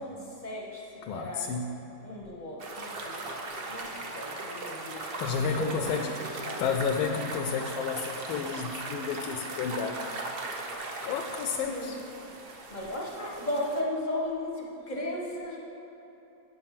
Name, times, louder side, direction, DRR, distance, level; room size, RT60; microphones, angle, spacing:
voice 1, 0.0-0.8 1.1-1.5 2.0-5.0 5.3-6.6 11.5-11.9 12.7-15.6, left 1 dB, 35° left, -3 dB, 0.7 m, -36 dB
voice 2, 1.0-1.8 5.2-6.1 6.6-10.3 11.0-12.0, left 6 dB, 85° left, 4 dB, 1.4 m, -31 dB
sound 1, 2.6-13.8, right 2 dB, 75° right, 0.5 m, -38 dB
9.3 x 6.5 x 5.8 m, 2.9 s
omnidirectional pair, 2.2 m